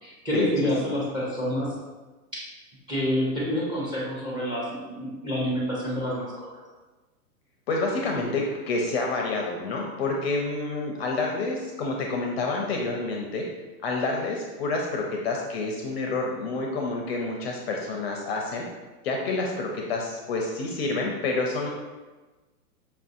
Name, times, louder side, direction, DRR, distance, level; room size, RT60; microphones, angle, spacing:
voice 1, 0.0-1.8 2.3-2.5 2.9-6.5, equal, 10° right, -4 dB, 0.7 m, -28 dB
voice 2, 7.7-13.4 13.8-18.6 19.0-21.7, left 3 dB, 40° left, 0 dB, 0.5 m, -28 dB
5.3 x 2.6 x 2.5 m, 1.2 s
hypercardioid pair, 125°, 49 cm